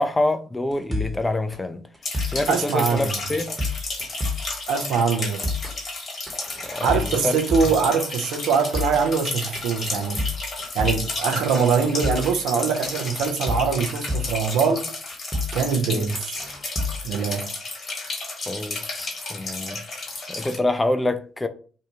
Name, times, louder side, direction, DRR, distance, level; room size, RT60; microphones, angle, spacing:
voice 1, 0.0-1.8 2.3-3.5 6.6-7.4 15.9-16.1 18.5-19.8 20.3-21.5, left 2 dB, 15° left, 0.4 m, -26 dB
sound 1, 0.7-1.2 1.5-1.6 1.9-2.5 3.0-4.5 4.8-4.9 5.2-5.8 6.3-7.8 8.1-8.2 8.5-9.1 9.5-11.1 11.4-11.5 11.8-12.4 12.8-14.4 14.7-14.8 15.1-15.6 16.1-17.1, left 2 dB, 20° right, 0.9 m, -29 dB
sound 2, 2.0-20.6, left 3 dB, 45° left, 1.1 m, -32 dB
voice 2, 2.5-3.2 4.7-5.4 6.8-10.2 10.7-14.9 15.5-16.4 17.0-17.5, right 6 dB, 70° right, 0.4 m, -23 dB
2.7 x 2.2 x 2.8 m
hypercardioid pair, 50°, 0 cm